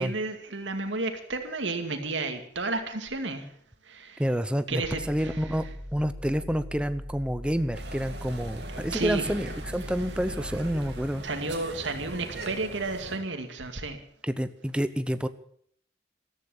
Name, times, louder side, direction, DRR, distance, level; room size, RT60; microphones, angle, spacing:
voice 1, 0.0-3.4 3.9-4.2 4.7-5.3 8.9-9.2 11.2-14.0, right 3 dB, 85° right, 6 dB, 2.3 m, -32 dB
voice 2, 4.2-5.6 5.9-11.2 14.2-15.3, equal, 5° right, 12 dB, 0.7 m, -29 dB
sound 1, 4.8-11.0, equal, 35° right, 4.8 m, -40 dB
sound 2, 7.7-13.2, right 2 dB, 60° right, 2.7 m, -40 dB
14.0 x 13.5 x 7.2 m, 0.64 s
head